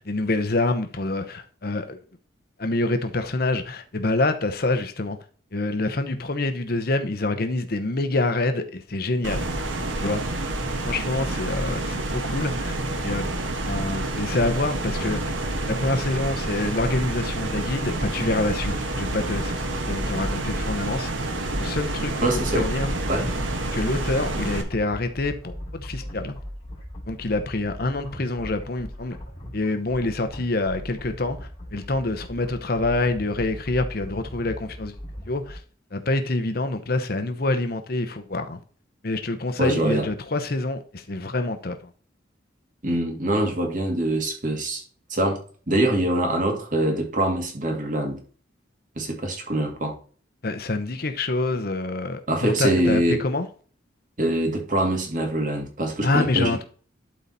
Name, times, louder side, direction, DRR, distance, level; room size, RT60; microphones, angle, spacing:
voice 1, 0.0-2.0 2.6-5.2 5.5-9.5 10.0-10.2 10.8-12.8 13.0-13.3 13.7-15.2 15.7-19.5 19.9-21.1 21.6-22.3 22.5-22.9 23.7-26.3 27.1-29.2 29.5-34.9 35.3-35.6 35.9-38.6 39.0-41.8 50.4-53.5 56.0-56.6, left 2 dB, 50° left, 0.9 m, -26 dB
sound 1, 9.2-24.6, right 2 dB, 85° right, 1.3 m, -28 dB
sound 2, 17.8-35.5, equal, 25° left, 3.0 m, -38 dB
voice 2, 22.2-22.7 23.1-23.3 39.6-40.1 42.8-44.8 45.1-45.4 45.7-48.2 49.0-50.0 52.3-53.2 54.2-56.6, right 1 dB, 45° right, 2.0 m, -24 dB
11.5 x 4.1 x 4.2 m
head